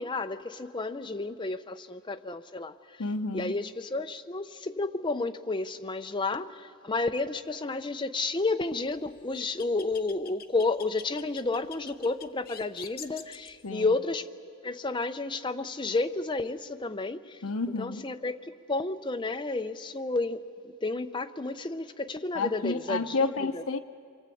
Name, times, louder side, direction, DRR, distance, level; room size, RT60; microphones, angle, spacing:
voice 1, 0.0-2.8 3.3-14.3 14.6-17.4 17.8-20.5 20.8-23.6, left 3 dB, 20° left, 8 dB, 0.7 m, -31 dB
voice 2, 3.0-3.5 13.6-13.9 17.4-18.1 22.3-23.8, left 3 dB, 70° left, 10 dB, 0.9 m, -30 dB
sound 1, 8.7-13.7, left 8 dB, 45° left, 1.0 m, -47 dB
27.5 x 23.5 x 8.5 m, 2.3 s
head